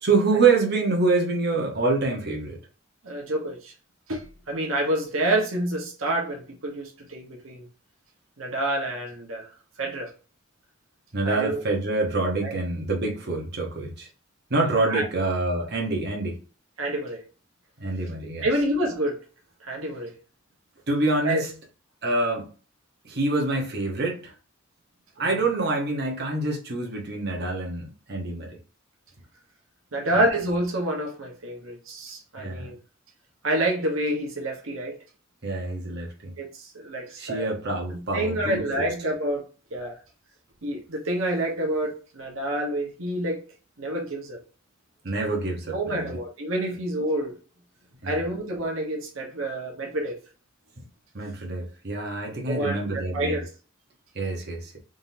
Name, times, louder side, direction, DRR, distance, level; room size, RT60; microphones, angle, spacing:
voice 1, 0.0-2.6 11.1-14.1 14.5-16.4 17.8-18.5 20.9-21.5 22.0-22.5 23.0-24.3 25.2-28.6 30.1-30.2 32.4-32.7 35.4-36.3 37.2-38.9 45.0-46.2 48.0-48.2 51.1-53.4 54.1-54.8, right 3 dB, 55° right, 1.1 m, -26 dB
voice 2, 3.0-3.7 4.1-7.7 8.4-9.5 9.8-10.1 11.2-11.6 12.4-12.5 14.5-15.0 16.8-17.2 18.4-19.2 19.6-20.1 21.2-21.4 25.2-25.3 29.9-32.8 33.4-35.0 36.4-37.5 37.9-39.5 39.7-40.0 40.6-43.4 43.8-44.4 45.7-47.3 48.0-50.2 52.5-53.5, right 1 dB, 80° right, 1.1 m, -28 dB
3.7 x 3.7 x 2.7 m
head